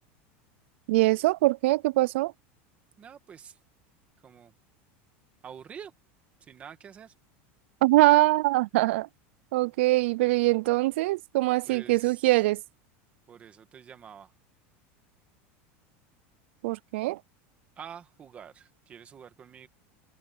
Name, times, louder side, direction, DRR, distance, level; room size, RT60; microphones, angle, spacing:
voice 1, 0.9-2.3 7.8-9.1 9.5-12.6 16.6-17.2, right 19 dB, 70° right, 0.4 m, -23 dB
voice 2, 3.0-3.6 4.2-4.5 5.4-5.9 6.4-7.1 11.7-12.4 13.3-14.3 17.8-19.7, right 8 dB, 20° right, 1.8 m, -47 dB
open air
supercardioid pair, 175°, 7 cm